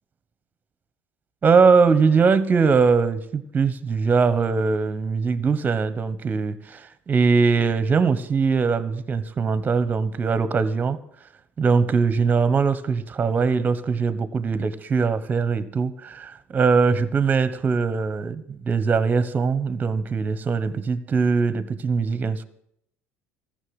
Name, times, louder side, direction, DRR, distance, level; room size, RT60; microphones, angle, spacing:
voice 1, 1.4-11.0 11.6-22.4, right 5 dB, 30° right, 15 dB, 1.1 m, -21 dB
14.5 x 6.7 x 9.6 m, 0.73 s
supercardioid pair, 90°, 6 cm